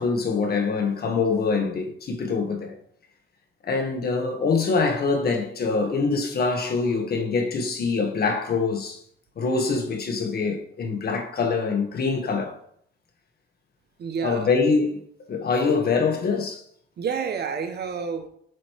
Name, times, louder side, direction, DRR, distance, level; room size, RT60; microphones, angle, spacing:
voice 1, 0.0-2.8 3.6-9.0 9.4-12.6 14.2-15.0 15.3-16.6, left 4 dB, 50° left, 1.5 m, -24 dB
voice 2, 14.0-14.5 17.0-18.3, right 6 dB, 55° right, 1.1 m, -29 dB
7.7 x 3.2 x 4.7 m
cardioid pair, 90°, 20 cm